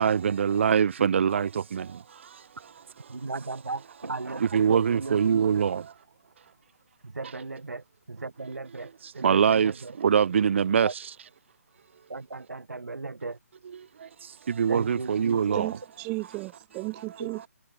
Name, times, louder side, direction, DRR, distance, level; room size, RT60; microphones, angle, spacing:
voice 1, 0.0-1.5 4.5-5.7 9.2-9.7 10.0-10.9 14.6-15.7, right 7 dB, 45° right, 0.6 m, -22 dB
voice 2, 3.1-5.4 7.0-9.9 10.8-10.9 12.1-13.4 14.7-15.5 17.2-17.3, right 3 dB, 80° right, 4.6 m, -37 dB
voice 3, 15.5-17.5, right 26 dB, 15° right, 2.0 m, -34 dB
figure-of-eight pair, 155°, 9 cm